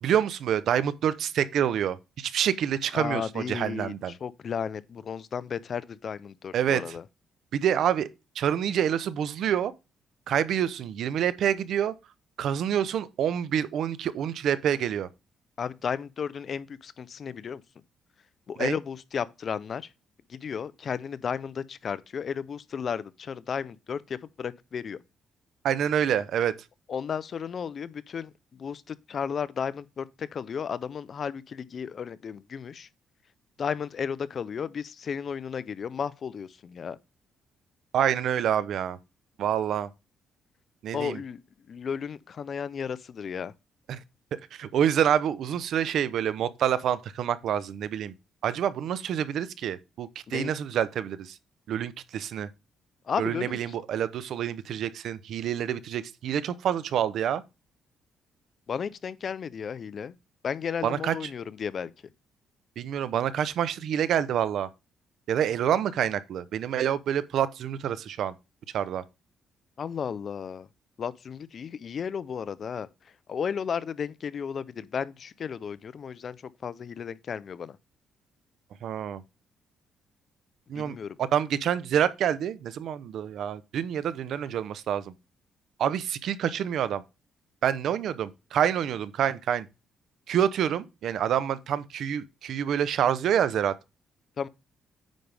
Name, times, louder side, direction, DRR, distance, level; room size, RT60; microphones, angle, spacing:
voice 1, 0.0-4.1 6.5-6.8 7.5-8.1 8.4-9.7 10.3-11.9 12.4-15.1 18.6-18.8 25.6-26.5 37.9-39.0 39.4-39.9 40.8-41.2 43.9-44.0 44.5-48.1 48.4-51.4 51.7-52.5 53.2-57.4 60.8-61.1 62.8-64.7 65.3-68.3 68.7-69.0 78.8-79.2 80.7-85.1 85.8-87.0 87.6-89.7 90.3-93.7, right 9 dB, 70° right, 0.7 m, -27 dB
voice 2, 2.9-7.0 15.6-17.6 18.5-19.8 20.3-25.0 26.9-28.3 28.6-32.9 33.6-37.0 40.9-41.4 41.7-43.5 50.3-50.5 53.1-53.6 58.7-60.1 60.4-61.9 69.8-70.7 71.0-72.9 73.3-76.4 76.6-77.8 80.8-81.2 94.4-94.5, left 7 dB, 50° left, 0.6 m, -33 dB
9.2 x 5.3 x 3.4 m
cardioid pair, 90°, 0 cm